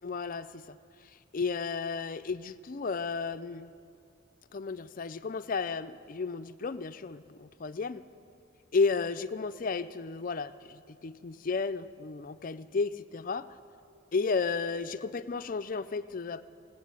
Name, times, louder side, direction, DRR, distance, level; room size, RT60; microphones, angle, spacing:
voice 1, 0.0-0.8 1.3-3.7 4.5-8.0 8.7-13.5 14.1-16.4, left 4 dB, 40° left, 12 dB, 0.4 m, -33 dB
18.0 x 8.2 x 9.5 m, 2.6 s
head